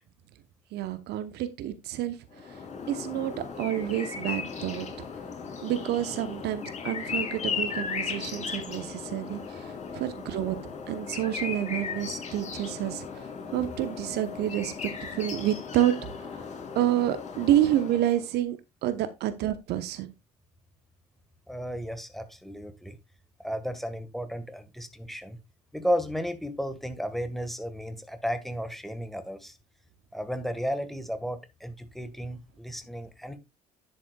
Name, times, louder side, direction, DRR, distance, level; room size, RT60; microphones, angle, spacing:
voice 1, 0.7-2.2 2.4-2.6 2.9-4.9 5.6-10.6 10.9-15.9 16.3-16.5 16.7-18.6 18.8-20.1, right 12 dB, 60° right, 1.0 m, -29 dB
sound 1, 2.3-18.3, left 5 dB, 35° left, 3.6 m, -36 dB
voice 2, 21.5-23.0 23.4-25.4 25.7-29.6 30.1-33.4, equal, ahead, 1.5 m, -33 dB
10.5 x 7.6 x 2.3 m
hypercardioid pair, 60°, 19 cm